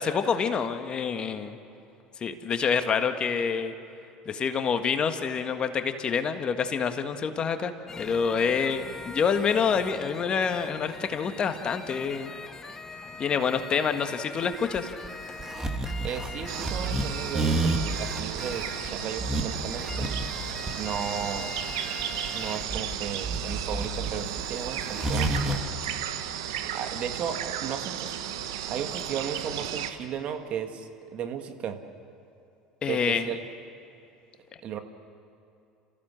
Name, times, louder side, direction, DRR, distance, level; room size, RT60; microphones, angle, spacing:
voice 1, 0.0-1.6 2.2-3.7 4.3-12.3 13.2-14.9 32.8-33.3, left 6 dB, 40° left, 8 dB, 1.6 m, -27 dB
sound 1, 7.9-22.6, left 4 dB, 20° left, 1.5 m, -42 dB
sound 2, 14.5-25.6, right 2 dB, 20° right, 2.6 m, -30 dB
voice 2, 16.0-20.1 20.8-21.5 22.3-25.6 26.7-28.1 28.7-31.8 32.9-33.4 34.6-34.8, right 8 dB, 50° right, 6 dB, 1.8 m, -35 dB
sound 3, 16.5-29.9, right 10 dB, 75° right, 1.2 m, -34 dB
29.0 x 15.0 x 7.6 m, 2.7 s
hypercardioid pair, 75°, 3 cm